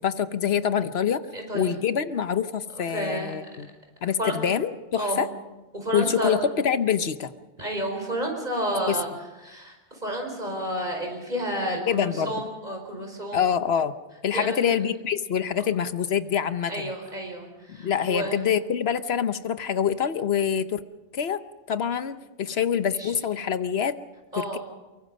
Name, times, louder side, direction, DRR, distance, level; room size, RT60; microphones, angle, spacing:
voice 1, 0.0-1.2 1.5-3.7 4.0-5.3 5.9-7.3 8.9-9.0 11.9-12.3 13.3-13.9 14.2-16.9 17.7-20.8 21.1-21.4 21.7-24.0 24.3-24.6, left 8 dB, 65° left, 12 dB, 1.1 m, -25 dB
voice 2, 1.3-1.7 2.9-3.3 4.2-4.3 5.0-5.2 5.7-6.4 7.6-9.1 9.4-13.4 14.3-14.8 16.7-18.4 23.0-23.1 24.3-24.6, right 1 dB, 40° right, 2 dB, 5.2 m, -30 dB
24.0 x 23.0 x 5.4 m, 1.1 s
omnidirectional pair, 1.2 m